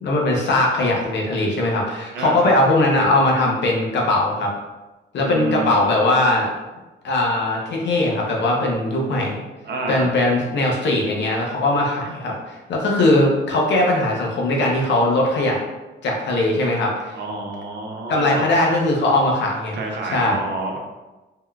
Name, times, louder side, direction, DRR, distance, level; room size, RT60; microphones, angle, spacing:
voice 1, 0.0-4.5 5.1-6.5 7.0-9.4 9.9-15.6 16.0-17.2 18.1-19.8 20.1-20.4, left 1 dB, 65° left, -1 dB, 0.8 m, -20 dB
voice 2, 2.1-2.5 5.1-6.0 8.9-9.0 9.6-10.1 17.1-18.4 19.7-20.8, right 2 dB, 60° right, 0 dB, 0.6 m, -29 dB
3.6 x 2.1 x 2.3 m, 1.1 s
cardioid pair, 90°, 20 cm